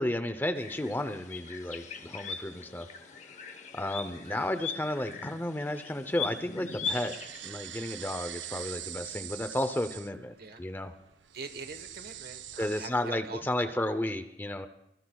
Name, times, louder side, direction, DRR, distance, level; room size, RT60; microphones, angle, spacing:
voice 1, 0.0-2.9 3.7-7.2 7.4-10.9 12.6-14.7, left 1 dB, 10° left, 9 dB, 0.6 m, -33 dB
sound 1, 0.5-7.5, left 5 dB, 40° left, 1.0 m, -40 dB
sound 2, 6.8-12.9, right 12 dB, 85° right, 0.6 m, -44 dB
voice 2, 11.3-13.8, right 4 dB, 55° right, 8 dB, 1.3 m, -44 dB
24.5 x 19.0 x 2.3 m, 0.78 s
head